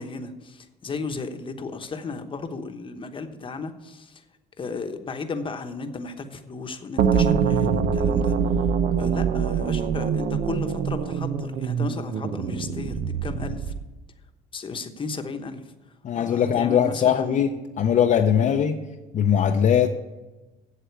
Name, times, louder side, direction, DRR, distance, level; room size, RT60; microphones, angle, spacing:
voice 1, 0.0-4.2 4.6-8.5 9.0-13.7 14.5-15.7 16.1-17.4 18.3-18.6, left 4 dB, 30° left, 7 dB, 1.0 m, -35 dB
sound 1, 7.0-13.9, right 7 dB, 65° right, 0.8 m, -24 dB
voice 2, 16.0-18.8 19.1-19.9, left 8 dB, 45° left, 3 dB, 0.6 m, -21 dB
7.9 x 7.7 x 8.2 m, 1.1 s
cardioid pair, 110°, 17 cm